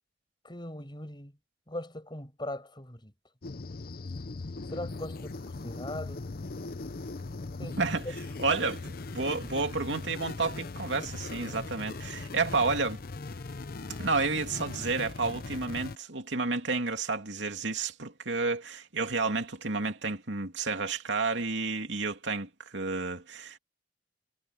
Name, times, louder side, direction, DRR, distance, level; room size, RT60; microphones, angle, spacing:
voice 1, 0.4-1.3 1.7-3.1 4.7-6.3 7.6-8.1 8.4-8.5, left 1 dB, 25° left, 6.8 m, -40 dB
sound 1, 3.4-16.0, left 3 dB, 55° left, 0.7 m, -39 dB
voice 2, 7.6-8.0 8.4-8.8 9.1-13.0 14.0-23.6, right 3 dB, 75° right, 2.8 m, -31 dB
head